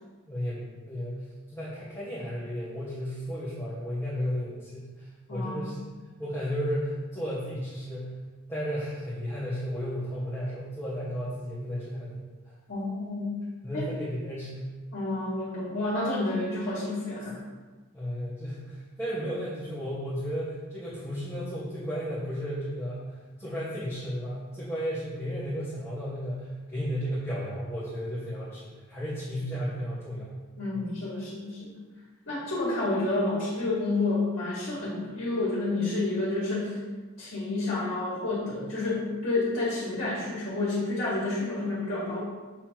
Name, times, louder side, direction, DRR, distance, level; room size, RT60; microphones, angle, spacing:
voice 1, 0.3-1.2 1.5-5.8 6.2-8.1 8.5-12.2 13.6-14.7 17.9-30.3 30.7-30.9, equal, 10° left, -12 dB, 1.3 m, -34 dB
voice 2, 5.3-5.7 12.7-13.4 13.7-13.8 14.9-17.4 30.6-31.7 32.3-36.8 37.2-42.2, left 2 dB, 65° left, -8 dB, 1.9 m, -29 dB
7.6 x 3.2 x 4.5 m, 1.3 s
head